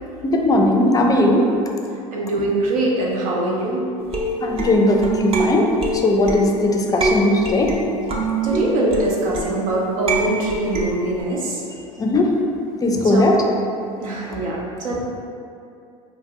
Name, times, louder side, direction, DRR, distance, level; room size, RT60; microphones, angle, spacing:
voice 1, 0.2-1.5 4.4-5.7 5.9-7.7 12.0-12.3 12.8-13.4, left 1 dB, 20° left, 1 dB, 0.4 m, -18 dB
voice 2, 2.1-3.8 8.4-11.6 13.0-13.5 14.0-15.0, right 2 dB, 80° right, -3 dB, 0.6 m, -23 dB
sound 1, 4.0-11.2, right 2 dB, 35° right, 0.5 m, -25 dB
2.6 x 2.0 x 3.4 m, 2.5 s
hypercardioid pair, 80°, 17 cm